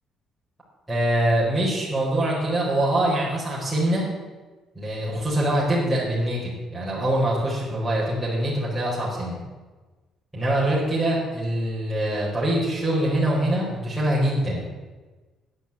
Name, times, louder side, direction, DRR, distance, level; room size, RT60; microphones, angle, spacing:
voice 1, 0.9-4.1 4.7-9.4 10.3-14.6, right 1 dB, 5° right, -8 dB, 4.9 m, -24 dB
11.5 x 9.7 x 8.5 m, 1.3 s
cardioid pair, 120°, 0 cm